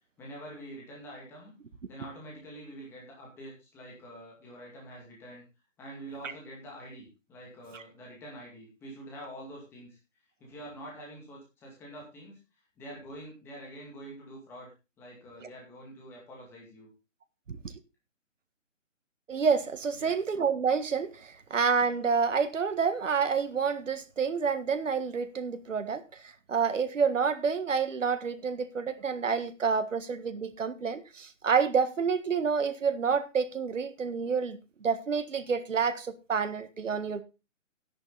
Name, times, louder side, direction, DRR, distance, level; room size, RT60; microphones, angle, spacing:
voice 1, 0.2-1.5 1.9-5.4 5.8-10.0 10.4-12.4 12.8-14.7 15.0-16.9 19.9-20.1, right 1 dB, 5° left, 2.2 m, -46 dB
voice 2, 19.3-26.0 26.5-37.2, right 6 dB, 75° right, 1.7 m, -28 dB
11.5 x 10.5 x 4.0 m
hypercardioid pair, 170°, 38 cm